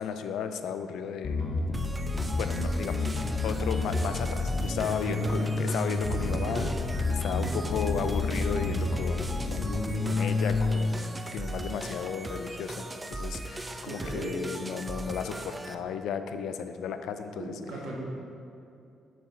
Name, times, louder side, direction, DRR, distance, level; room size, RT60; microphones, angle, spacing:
voice 1, 0.0-1.4 2.4-3.1 3.4-6.7 7.1-9.7 10.0-17.6, left 7 dB, 80° left, 9 dB, 0.4 m, -34 dB
Bass guitar, 1.2-10.8, left 3 dB, 50° left, 0.9 m, -29 dB
sound 1, 1.7-15.7, right 2 dB, 20° right, 0.5 m, -38 dB
voice 2, 6.3-6.7 7.3-7.8 13.8-14.4 17.3-18.0, right 2 dB, 75° right, -3 dB, 1.6 m, -37 dB
7.1 x 5.9 x 4.2 m, 2.6 s
cardioid pair, 90°, 0 cm